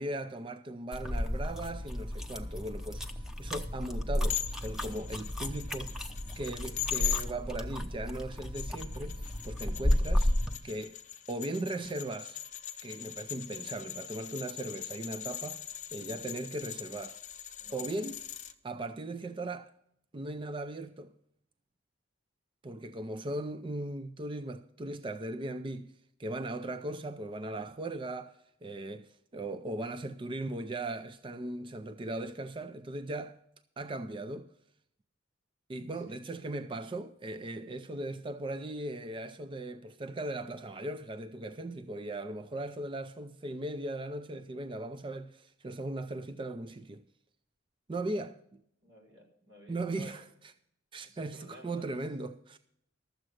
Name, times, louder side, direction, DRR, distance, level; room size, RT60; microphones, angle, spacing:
voice 1, 0.0-5.9 6.4-10.3 10.6-11.0 11.3-12.4 12.8-15.6 15.9-17.2 17.7-18.2 18.6-19.7 20.1-21.1 22.6-25.9 26.2-33.4 33.8-34.5 35.7-47.0 47.9-48.6 49.7-50.2 50.9-52.6, right 2 dB, 25° right, 0.5 m, -38 dB
sound 1, 0.9-10.6, left 1 dB, 5° right, 0.8 m, -33 dB
sound 2, 4.3-7.3 8.3-18.5, left 11 dB, 40° left, 0.9 m, -41 dB
voice 2, 48.8-50.1 51.0-51.9, equal, 85° right, 4.5 m, -53 dB
13.0 x 7.5 x 6.4 m
head